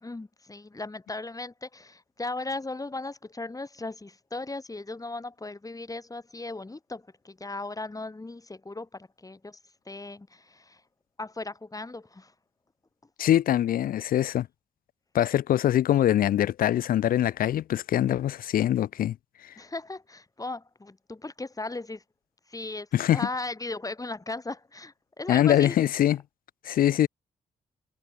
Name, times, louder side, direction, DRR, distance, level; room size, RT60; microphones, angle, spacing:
voice 1, 0.0-9.6 9.9-10.8 11.2-12.3 19.6-22.0 22.5-25.8, left 2 dB, 20° left, 2.2 m, -37 dB
voice 2, 13.2-14.5 15.1-19.2 22.9-23.2 25.3-26.2 26.7-27.1, left 12 dB, 65° left, 0.6 m, -23 dB
hypercardioid pair, 40°, 16 cm